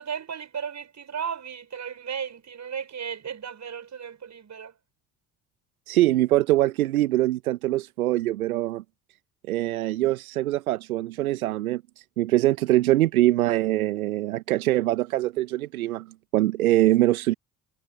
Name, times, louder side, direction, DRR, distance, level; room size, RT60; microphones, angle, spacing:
voice 1, 0.0-4.7, right 7 dB, 40° right, 5.8 m, -35 dB
voice 2, 5.9-8.8 9.5-16.1 16.3-17.3, right 15 dB, 85° right, 0.8 m, -23 dB
hypercardioid pair, 55°, 42 cm